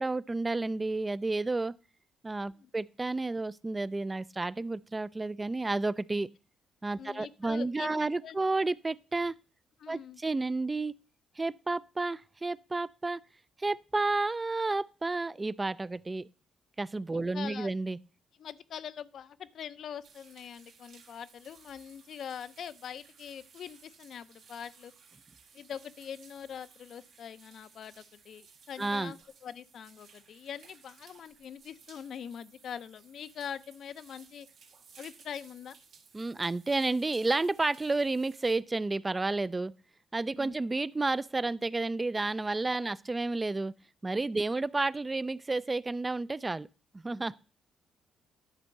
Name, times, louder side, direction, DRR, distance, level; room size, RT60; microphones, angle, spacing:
voice 1, 0.0-1.7 2.2-6.3 6.8-9.3 9.9-10.9 11.4-13.2 13.6-16.3 16.8-18.0 28.8-29.1 36.1-39.7 40.1-43.7 44.0-46.7 46.9-47.3, right 3 dB, 20° right, 0.4 m, -31 dB
voice 2, 7.0-8.4 9.8-10.2 17.1-17.7 18.4-24.9 25.5-29.2 29.4-34.5 35.0-35.8 40.3-40.5 42.8-43.0, left 8 dB, 65° left, 0.5 m, -43 dB
sound 1, 20.0-38.5, right 5 dB, 75° right, 2.0 m, -59 dB
11.0 x 4.3 x 6.5 m
cardioid pair, 90°, 0 cm